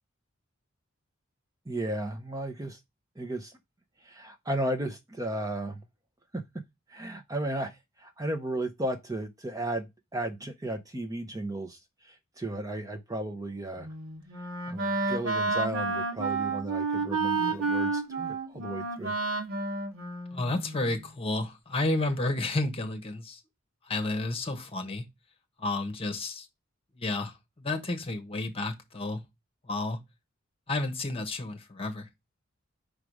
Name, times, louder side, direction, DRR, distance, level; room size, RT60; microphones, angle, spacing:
voice 1, 1.7-2.8 3.2-3.5 4.0-5.8 6.3-6.4 6.9-13.9 14.7-19.1, right 1 dB, 15° right, 0.7 m, -34 dB
Wind instrument woodwind instrument, 13.8-20.9, right 3 dB, 90° right, 1.4 m, -31 dB
voice 2, 20.3-23.4 23.8-25.0 25.6-26.5 26.9-29.2 29.6-30.0 30.7-32.1, left 2 dB, 30° left, 1.3 m, -31 dB
5.1 x 4.9 x 4.8 m
head